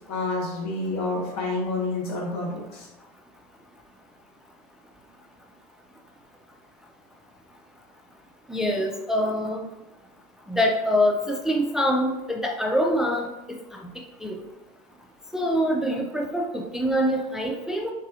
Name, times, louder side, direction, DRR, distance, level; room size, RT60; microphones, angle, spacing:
voice 1, 0.1-2.9, left 2 dB, 70° left, -1 dB, 1.1 m, -28 dB
voice 2, 8.5-9.6 10.5-13.3 14.2-14.4 15.3-17.9, equal, ahead, 1 dB, 0.3 m, -24 dB
4.0 x 2.7 x 2.4 m, 1.1 s
hypercardioid pair, 85°, 20 cm